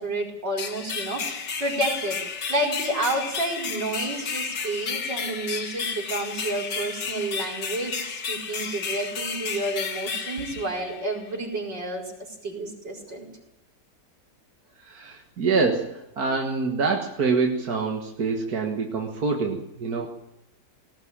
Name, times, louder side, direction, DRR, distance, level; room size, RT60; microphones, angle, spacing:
voice 1, 0.0-2.2 2.5-13.3, right 1 dB, 75° right, 0 dB, 6.0 m, -30 dB
sound 1, 0.6-11.3, left 5 dB, 70° left, 2.3 m, -32 dB
voice 2, 14.8-20.1, right 4 dB, 55° right, 2 dB, 2.2 m, -26 dB
19.0 x 18.5 x 8.9 m, 0.84 s
omnidirectional pair, 1.9 m